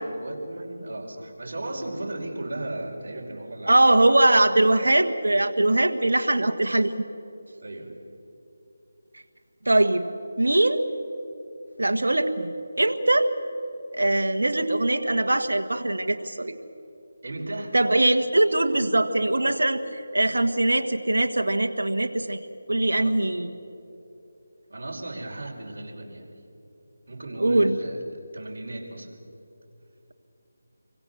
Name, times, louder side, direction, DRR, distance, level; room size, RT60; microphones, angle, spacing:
voice 1, 0.2-4.1 7.6-8.0 17.2-17.8 23.0-23.2 24.7-26.3 27.1-28.0 28.3-29.1, right 2 dB, 60° right, -1 dB, 5.2 m, -36 dB
voice 2, 3.7-6.9 9.6-10.1 10.4-10.8 11.8-12.5 12.8-13.3 13.9-16.6 17.7-22.4 22.7-23.5 27.4-27.7, right 1 dB, 85° right, 5 dB, 1.6 m, -21 dB
28.0 x 23.5 x 7.1 m, 2.8 s
figure-of-eight pair, 165°, 0 cm